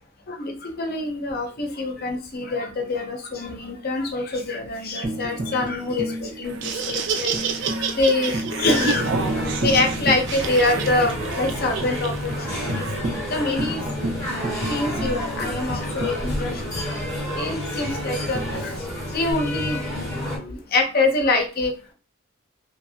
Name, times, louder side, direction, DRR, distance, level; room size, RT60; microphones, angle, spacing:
voice 1, 0.3-12.9 13.3-14.1 14.7-18.7 19.1-21.9, left 2 dB, 45° left, 4 dB, 0.6 m, -25 dB
Tambourine, 5.0-10.7 11.0-11.1 11.5-11.9 12.3-12.4 12.7-16.8 18.3-19.3, right 1 dB, 90° right, 1.1 m, -32 dB
Laughter, 6.4-13.0, right 6 dB, 55° right, 0.4 m, -30 dB
sound 1, 8.6-20.4, left 1 dB, 15° left, 1.5 m, -29 dB
2.8 x 2.6 x 2.7 m, 0.35 s
head